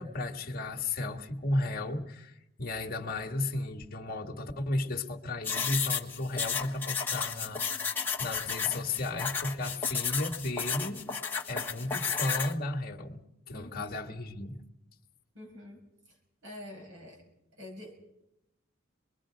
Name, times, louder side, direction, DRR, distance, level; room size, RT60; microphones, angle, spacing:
voice 1, 0.0-7.8 8.2-11.1 11.5-13.2 13.5-14.6, left 2 dB, 45° left, 2 dB, 1.7 m, -34 dB
sound 1, 5.4-12.5, left 6 dB, 10° left, 1.4 m, -33 dB
voice 2, 13.5-13.9 15.3-15.8 16.1-16.2 16.4-17.2 17.6-18.0, left 1 dB, 65° right, 1 dB, 6.6 m, -46 dB
26.0 x 22.0 x 5.1 m, 0.86 s
head